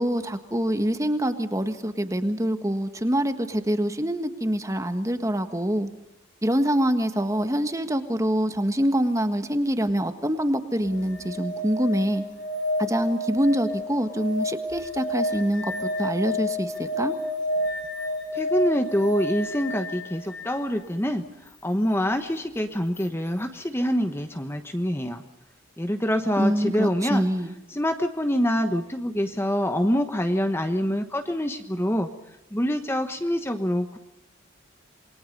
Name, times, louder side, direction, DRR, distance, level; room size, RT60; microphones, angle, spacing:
voice 1, 0.0-5.9 6.4-12.2 12.8-17.1 26.4-27.5, equal, 15° right, 9 dB, 1.6 m, -25 dB
sound 1, 10.8-20.6 22.9-23.0, left 1 dB, 65° left, 7.3 m, -30 dB
voice 2, 18.3-21.2 21.6-25.2 25.8-27.3 27.7-32.1 32.5-34.0, equal, 10° left, 7 dB, 1.2 m, -25 dB
28.0 x 22.0 x 5.4 m, 0.88 s
head